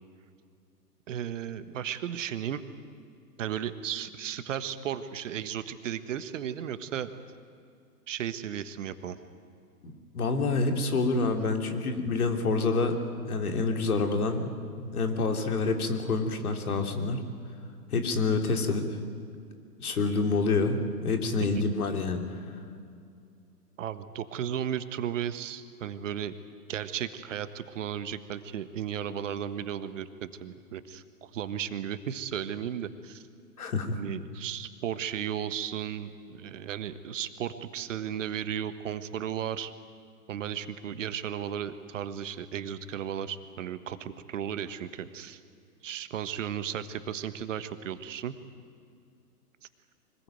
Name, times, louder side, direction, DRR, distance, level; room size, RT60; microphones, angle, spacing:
voice 1, 1.1-2.7 3.4-7.1 8.1-9.2 23.8-26.3 26.7-33.2 33.9-39.7 40.3-45.4 45.8-48.3, right 9 dB, 50° right, 12 dB, 1.5 m, -35 dB
voice 2, 9.8-12.9 13.2-14.5 14.8-17.2 17.9-18.8 19.8-22.2 33.6-34.0, left 3 dB, 60° left, 6 dB, 3.3 m, -27 dB
24.5 x 20.0 x 9.2 m, 2.4 s
figure-of-eight pair, 120°, 48 cm